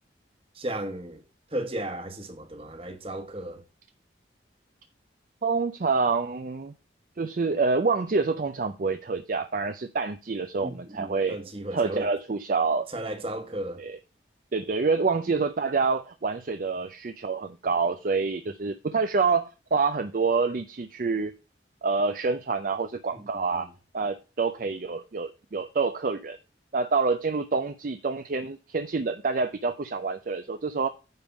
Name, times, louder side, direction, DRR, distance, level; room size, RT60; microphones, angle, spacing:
voice 1, 0.5-1.2 1.5-3.6 10.6-12.1 12.9-13.8 23.1-23.7, right 1 dB, 30° right, 1.3 m, -35 dB
voice 2, 5.4-6.7 7.2-11.4 11.7-12.9 13.8-14.0 14.5-21.3 21.8-23.7 23.9-26.4 26.7-30.9, right 4 dB, 45° right, 0.5 m, -27 dB
9.5 x 3.7 x 7.0 m
head